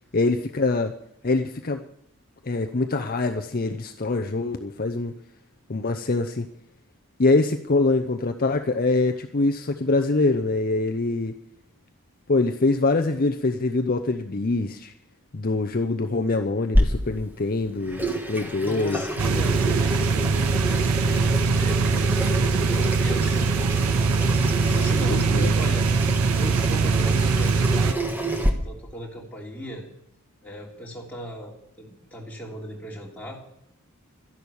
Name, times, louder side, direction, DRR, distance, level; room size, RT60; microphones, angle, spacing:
voice 1, 0.1-0.9 1.2-1.8 2.4-5.1 5.7-6.5 7.2-11.3 12.3-14.9 15.3-19.0 25.1-25.5, left 3 dB, 40° left, 6 dB, 0.7 m, -24 dB
Water tap faucet / Sink (filling or washing), 16.7-28.5, equal, 10° right, 1.4 m, -28 dB
voice 2, 18.6-23.6 24.5-25.2 25.5-25.9 26.4-28.2 28.6-29.8 30.4-33.4, equal, 5° left, -3 dB, 3.1 m, -38 dB
sound 1, 19.2-27.9, right 5 dB, 70° right, 0.5 m, -22 dB
12.0 x 11.0 x 7.1 m, 0.78 s
head